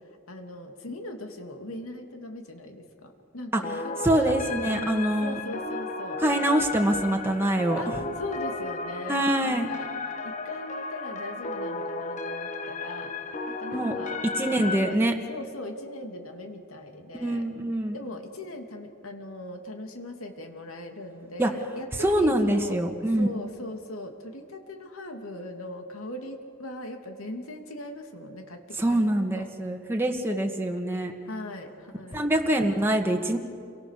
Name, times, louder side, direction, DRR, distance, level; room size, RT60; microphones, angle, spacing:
voice 1, 0.3-4.3 4.7-6.2 7.8-9.9 10.2-13.1 13.5-14.2 14.5-15.0 15.3-17.4 17.9-22.8 23.1-28.6 28.9-29.5 31.3-32.3, left 1 dB, 85° left, 4 dB, 2.8 m, -39 dB
sound 1, 3.6-14.9, left 3 dB, 35° left, 1.3 m, -34 dB
voice 2, 4.0-5.4 6.2-8.0 9.1-9.7 13.7-13.9 14.4-15.1 17.1-18.0 21.4-21.5 22.0-23.3 28.8-31.1 32.1-33.4, right 1 dB, 10° right, 2 dB, 1.6 m, -24 dB
29.0 x 23.0 x 6.7 m, 2.2 s
head